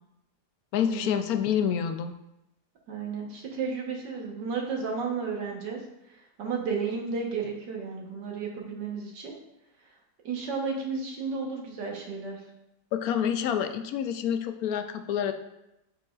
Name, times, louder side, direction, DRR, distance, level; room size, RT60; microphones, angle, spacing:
voice 1, 0.7-2.1 12.9-15.3, left 8 dB, 70° left, 7 dB, 0.9 m, -27 dB
voice 2, 2.9-5.8 6.1-9.3 10.2-12.4, right 5 dB, 80° right, 0 dB, 1.8 m, -33 dB
10.5 x 5.0 x 2.4 m, 0.89 s
omnidirectional pair, 1.8 m